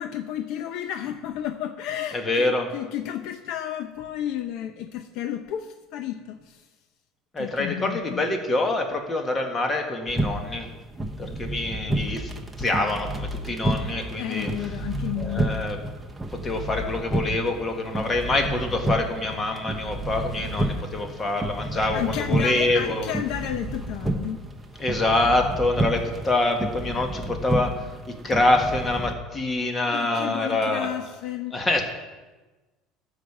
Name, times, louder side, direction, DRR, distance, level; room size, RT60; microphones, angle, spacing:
voice 1, 0.0-6.6 7.4-8.2 14.2-15.5 21.9-24.4 29.9-31.6, left 11 dB, 65° left, 8 dB, 0.6 m, -32 dB
voice 2, 2.1-2.7 7.3-10.7 11.2-12.3 12.6-14.5 15.2-15.8 16.3-23.1 24.8-27.7 28.1-30.9 31.5-31.8, left 2 dB, 20° left, 4 dB, 1.6 m, -25 dB
sound 1, 10.1-29.1, right 1 dB, 10° right, 1.0 m, -30 dB
13.5 x 5.1 x 7.0 m, 1.2 s
cardioid pair, 135°, 0 cm